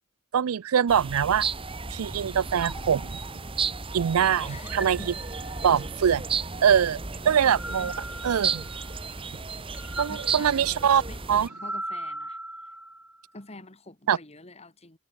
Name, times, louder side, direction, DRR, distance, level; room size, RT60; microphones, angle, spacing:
voice 1, 0.3-1.5 1.9-3.2 3.9-5.0 5.6-6.2 6.6-7.0 7.3-7.9 8.2-8.6 10.0-11.0 11.3-11.5 14.1-14.2, right 8 dB, 80° right, 0.4 m, -23 dB
sound 1, 0.9-11.5, right 5 dB, 25° right, 1.5 m, -33 dB
sound 2, 2.6-4.0 4.6-5.9 7.3-9.1 9.7-13.3, right 1 dB, 5° right, 1.3 m, -40 dB
voice 2, 4.4-5.2 5.6-5.9 7.2-8.0 9.8-12.4 13.3-15.0, left 2 dB, 30° left, 2.1 m, -46 dB
head